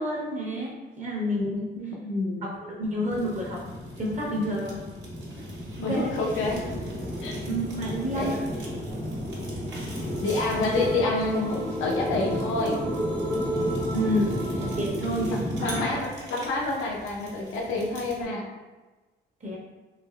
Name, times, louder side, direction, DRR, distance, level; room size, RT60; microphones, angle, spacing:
voice 1, 0.0-1.7 2.4-3.6 4.0-4.8 5.8-6.1 7.5-8.5 13.9-15.9 19.4-19.6, equal, 35° right, -2 dB, 0.8 m, -29 dB
voice 2, 1.4-2.5 5.8-6.7 7.2-7.3 8.1-8.4 10.2-12.8 15.3-18.4, left 2 dB, 85° left, -1 dB, 0.7 m, -28 dB
Fire, 3.1-18.2, equal, 65° right, 1.1 m, -34 dB
sound 1, 6.5-14.8, equal, 10° left, 0.5 m, -33 dB
3.3 x 2.6 x 2.3 m, 1.2 s
cardioid pair, 90°, 20 cm